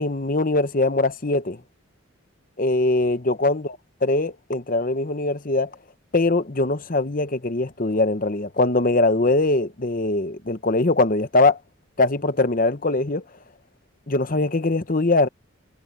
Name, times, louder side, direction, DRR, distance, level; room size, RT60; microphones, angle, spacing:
voice 1, 0.0-1.6 2.6-3.7 4.0-5.7 6.1-11.6 12.0-13.2 14.1-15.3, left 2 dB, 40° left, 1.0 m, -21 dB
head